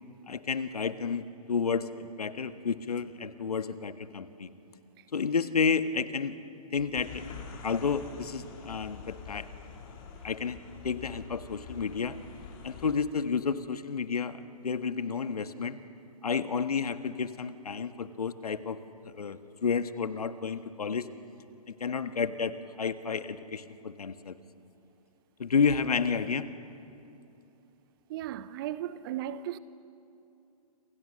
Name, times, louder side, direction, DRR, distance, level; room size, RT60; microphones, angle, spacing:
voice 1, 0.3-4.5 5.1-6.4 6.7-7.3 7.6-9.5 10.2-10.6 10.8-12.2 12.6-15.8 16.2-21.1 21.7-24.4 25.4-26.5, left 5 dB, 70° left, 1.5 m, -31 dB
sound 1, 6.9-13.0, left 6 dB, 35° left, 4.3 m, -46 dB
voice 2, 28.1-29.6, right 12 dB, 35° right, 0.9 m, -36 dB
28.5 x 27.5 x 6.5 m
figure-of-eight pair, 130°, 20 cm